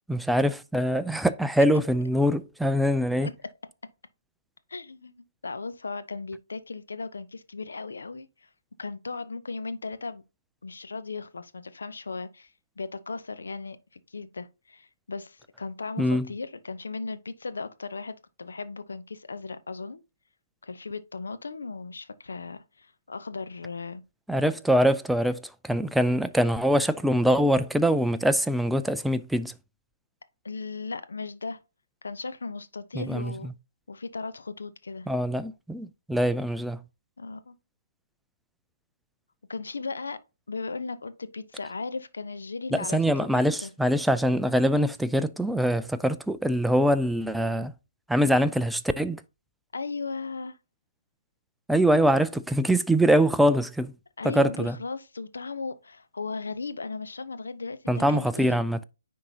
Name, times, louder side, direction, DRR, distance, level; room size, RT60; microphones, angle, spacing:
voice 1, 0.1-3.3 16.0-16.3 24.3-29.5 32.9-33.5 35.1-36.8 42.7-47.7 48.1-49.2 51.7-53.9 54.2-54.8 57.9-58.8, equal, ahead, 0.3 m, -23 dB
voice 2, 4.7-5.1 5.4-8.3 8.8-10.2 10.6-12.5 12.8-20.0 20.6-24.0 30.4-31.6 32.0-33.5 33.9-35.1 37.2-37.5 39.5-40.2 40.5-43.7 49.7-50.6 54.2-58.7, left 4 dB, 70° left, 0.8 m, -36 dB
9.7 x 3.7 x 2.8 m
figure-of-eight pair, 140°, 0 cm